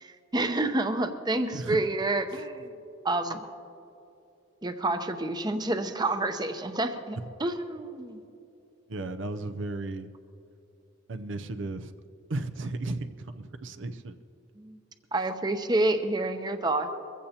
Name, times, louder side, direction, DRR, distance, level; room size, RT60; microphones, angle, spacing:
voice 1, 0.0-2.7 3.0-3.4 4.6-8.2 14.6-14.8 15.1-17.0, right 2 dB, 20° right, 8 dB, 0.7 m, -28 dB
voice 2, 1.5-1.8 2.3-2.4 8.9-10.1 11.1-11.9 12.3-14.2, right 2 dB, 80° right, 9 dB, 0.6 m, -35 dB
22.5 x 15.5 x 2.9 m, 2.8 s
head